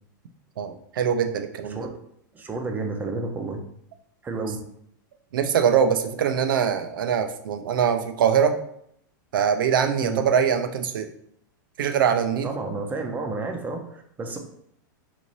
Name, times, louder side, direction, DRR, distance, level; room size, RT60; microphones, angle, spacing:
voice 1, 0.6-1.9 5.3-8.6 9.3-11.1 11.8-12.5, right 7 dB, 85° right, 8 dB, 0.5 m, -23 dB
voice 2, 2.3-3.6 4.2-4.6 10.0-10.2 12.4-14.4, right 3 dB, 15° right, 3 dB, 0.5 m, -31 dB
3.1 x 2.6 x 3.9 m, 0.71 s
supercardioid pair, 135°, 11 cm